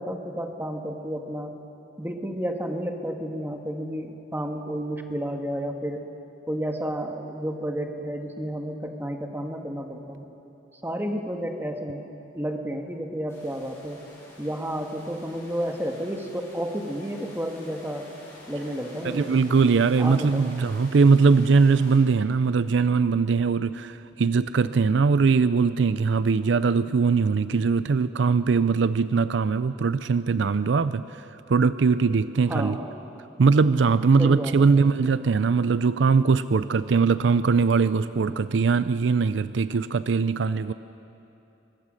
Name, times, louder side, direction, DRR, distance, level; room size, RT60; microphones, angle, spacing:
voice 1, 0.0-1.5 2.0-6.0 6.5-10.2 10.8-12.1 12.3-14.0 14.4-18.1 18.5-19.4 20.0-20.5 32.5-33.0 34.2-34.9, equal, 10° right, 4 dB, 1.5 m, -31 dB
sound 1, 13.3-22.0, left 1 dB, 15° left, 7.3 m, -48 dB
voice 2, 19.0-31.0 31.5-32.8 33.4-40.7, right 4 dB, 70° right, 14 dB, 0.5 m, -21 dB
24.0 x 21.0 x 6.5 m, 2.9 s
head